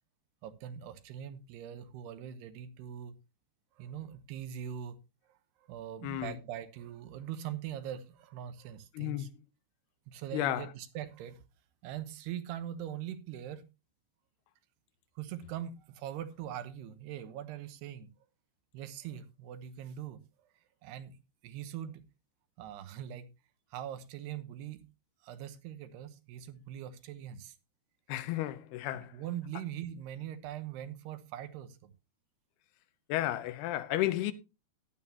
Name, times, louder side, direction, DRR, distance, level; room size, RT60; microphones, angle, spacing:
voice 1, 0.4-3.2 3.8-5.0 5.3-9.3 10.1-11.4 11.8-13.6 15.2-18.1 18.7-20.2 20.8-22.0 22.6-23.3 23.7-24.8 25.2-27.6 28.9-31.9, right 10 dB, 90° right, 3.1 m, -42 dB
voice 2, 6.0-6.3 9.0-9.3 10.3-10.7 28.1-29.1 33.1-34.3, left 14 dB, 85° left, 2.8 m, -32 dB
15.0 x 11.0 x 2.8 m
omnidirectional pair, 4.6 m